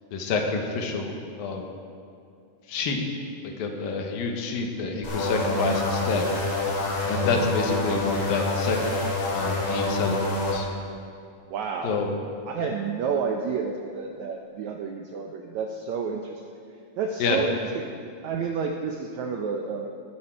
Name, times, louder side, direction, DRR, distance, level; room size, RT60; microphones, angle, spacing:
voice 1, 0.1-1.1 1.4-1.6 2.7-3.0 3.4-6.2 7.1-8.8 9.3-10.7 11.8-12.1 17.2-17.4, left 4 dB, 85° left, 2 dB, 3.0 m, -28 dB
sound 1, 5.0-10.6, left 2 dB, 50° left, 3.0 m, -27 dB
voice 2, 11.5-12.0 12.5-16.4 17.0-17.9 18.2-19.9, right 5 dB, 80° right, 3 dB, 1.6 m, -30 dB
19.0 x 8.2 x 4.6 m, 2.4 s
omnidirectional pair, 4.0 m